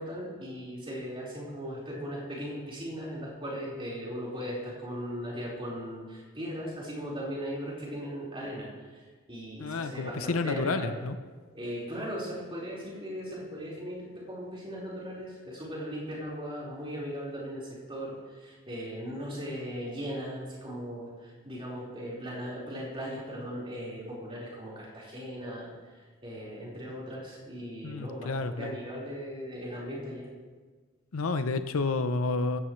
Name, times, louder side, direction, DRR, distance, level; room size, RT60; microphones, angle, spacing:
voice 1, 0.0-11.0 11.5-25.9 26.2-30.3, equal, 25° right, -6 dB, 4.6 m, -38 dB
voice 2, 9.6-11.2 27.8-28.7 31.1-32.6, left 3 dB, 85° left, 9 dB, 0.7 m, -30 dB
17.5 x 16.5 x 3.2 m, 1.5 s
head